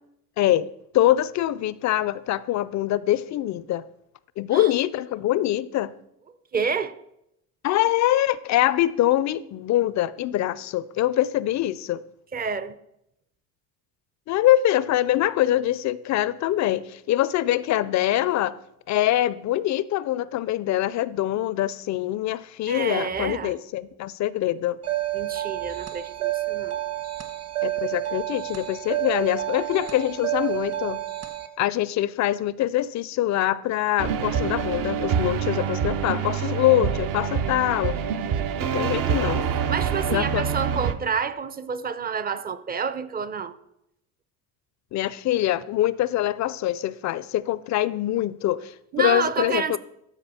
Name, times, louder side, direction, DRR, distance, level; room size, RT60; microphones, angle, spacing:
voice 1, 0.4-0.7 0.9-3.8 4.4-5.9 7.6-12.0 14.3-18.6 18.9-24.8 27.6-31.0 31.6-38.0 38.6-39.5 40.1-40.4 44.9-49.8, left 13 dB, 45° left, 0.4 m, -24 dB
voice 2, 6.5-6.9 12.3-12.8 22.7-23.5 25.1-26.8 39.7-43.6 48.9-49.8, right 5 dB, 25° right, 0.5 m, -29 dB
sound 1, 24.8-31.5, right 16 dB, 40° right, 1.3 m, -29 dB
sound 2, 34.0-40.9, right 7 dB, 55° right, 0.8 m, -26 dB
13.5 x 5.0 x 4.2 m
supercardioid pair, 90°, 40 cm